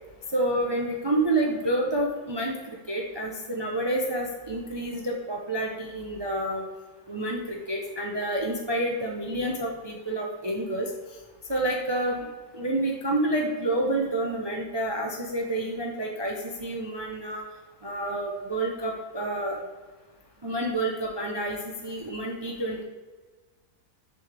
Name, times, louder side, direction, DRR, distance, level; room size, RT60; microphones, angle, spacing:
voice 1, 0.3-6.6 7.1-10.9 11.5-12.3 12.5-17.4 17.8-19.6 20.4-22.8, right 1 dB, 30° right, 0 dB, 0.4 m, -29 dB
6.9 x 5.3 x 3.4 m, 1.3 s
omnidirectional pair, 1.6 m